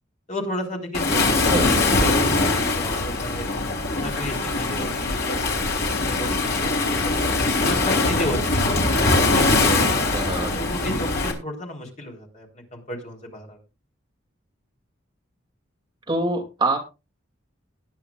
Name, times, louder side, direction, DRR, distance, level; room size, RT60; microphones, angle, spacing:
voice 1, 0.3-3.5 4.0-6.8 7.0-10.1 10.5-13.6, left 1 dB, 35° left, 1 dB, 3.8 m, -34 dB
Waves surf, 0.9-11.3, left 2 dB, 50° left, 3.7 m, -22 dB
voice 2, 10.1-10.6 16.1-16.8, right 2 dB, 20° right, 2 dB, 2.6 m, -25 dB
19.5 x 10.0 x 2.4 m, 0.28 s
head